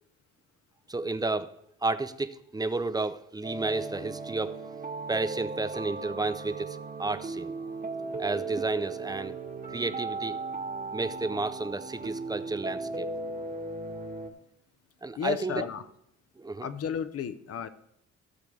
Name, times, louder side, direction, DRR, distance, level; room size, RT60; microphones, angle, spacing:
voice 1, 0.9-1.5 1.8-4.6 5.1-7.5 8.2-9.4 9.7-10.4 10.9-13.1 15.0-15.6 16.4-16.7, right 3 dB, 15° right, 12 dB, 0.5 m, -32 dB
sound 1, 3.4-14.3, right 3 dB, 30° right, 1.4 m, -37 dB
voice 2, 15.2-15.8 16.6-17.7, left 7 dB, 50° left, 12 dB, 0.8 m, -33 dB
15.5 x 6.8 x 3.2 m, 0.75 s
cardioid pair, 90°, 30 cm